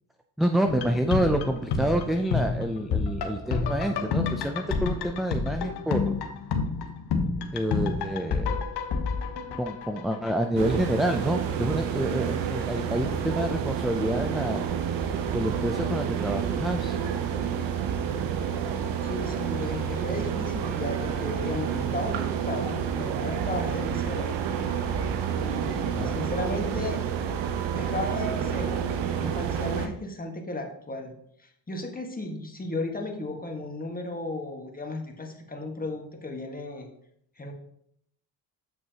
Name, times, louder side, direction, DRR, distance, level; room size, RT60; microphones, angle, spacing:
voice 1, 0.4-6.1 7.5-8.6 9.6-14.7 15.3-17.0 25.8-26.2, right 1 dB, ahead, 5 dB, 0.4 m, -28 dB
sound 1, 0.7-10.6 10.9-11.0, left 4 dB, 55° left, 1.2 m, -29 dB
sound 2, 10.6-29.9, right 8 dB, 70° right, 1.0 m, -29 dB
voice 2, 19.0-24.3 25.4-27.0 27.7-28.9 29.2-36.9 37.4-37.5, left 2 dB, 20° left, 3 dB, 1.6 m, -35 dB
7.4 x 6.6 x 2.9 m, 0.72 s
supercardioid pair, 70°, 46 cm